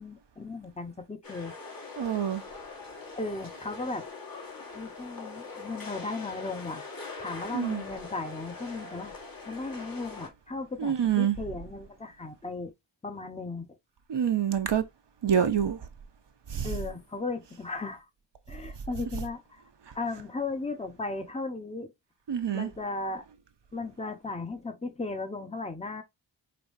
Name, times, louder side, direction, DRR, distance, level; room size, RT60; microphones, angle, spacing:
voice 1, 0.0-1.5 3.1-4.1 4.7-6.9 7.2-9.1 9.5-12.7 13.0-13.7 16.6-18.0 18.5-19.6 19.9-21.9 22.5-23.2 23.7-26.0, left 3 dB, 15° left, 0.9 m, -36 dB
sound 1, 1.2-10.3, left 4 dB, 45° left, 1.5 m, -42 dB
voice 2, 2.0-2.4 7.5-7.8 10.8-11.4 14.1-14.8 15.2-15.8 16.5-16.7 22.3-22.7, right 8 dB, 60° right, 0.8 m, -26 dB
5.2 x 2.8 x 2.6 m
cardioid pair, 55°, 47 cm